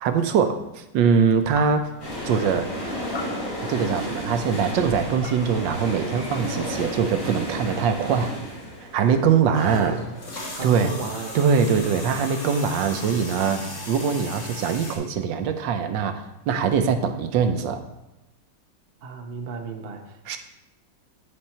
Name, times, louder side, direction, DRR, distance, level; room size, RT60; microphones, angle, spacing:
voice 1, 0.0-1.9 2.2-2.7 3.7-8.3 8.8-10.0 10.6-10.9 11.3-17.8 20.3-20.4, right 6 dB, 80° right, 8 dB, 1.4 m, -22 dB
sound 1, 1.3-7.5, left 3 dB, 85° left, 0.5 m, -43 dB
sound 2, 2.0-11.8 12.1-12.2, equal, 70° left, 4.1 m, -33 dB
sound 3, 9.5-15.0, left 1 dB, 45° left, 1.7 m, -36 dB
voice 2, 9.5-10.1 10.5-11.4 19.0-20.4, right 3 dB, 55° right, 3 dB, 0.6 m, -33 dB
9.9 x 4.3 x 4.3 m, 0.92 s
omnidirectional pair, 2.0 m